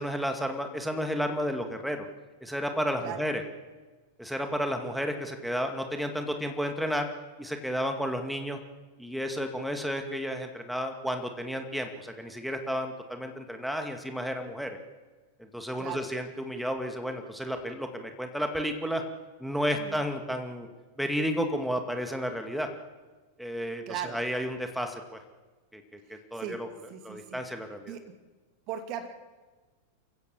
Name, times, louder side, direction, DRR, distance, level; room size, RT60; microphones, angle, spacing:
voice 1, 0.0-2.1 2.4-3.4 4.2-7.1 7.4-8.6 9.0-14.8 15.4-19.0 19.4-20.7 21.0-22.7 23.4-25.2 25.7-26.7 27.0-27.9, equal, ahead, 5 dB, 2.2 m, -32 dB
voice 2, 15.8-16.1 19.8-20.0 23.9-24.2 26.1-26.6 26.9-27.4 27.9-28.0 28.7-29.1, right 9 dB, 40° right, 8 dB, 2.2 m, -38 dB
29.0 x 15.5 x 7.2 m, 1.3 s
figure-of-eight pair, 90°, 0 cm